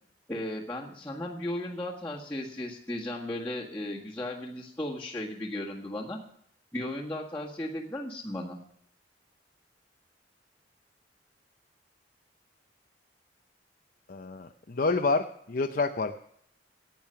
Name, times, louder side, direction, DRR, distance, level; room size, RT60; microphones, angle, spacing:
voice 1, 0.3-6.2 6.7-8.6, left 1 dB, 10° left, -7 dB, 1.8 m, -35 dB
voice 2, 14.1-16.2, left 3 dB, 50° left, 4 dB, 0.7 m, -28 dB
15.5 x 9.3 x 5.7 m, 0.69 s
head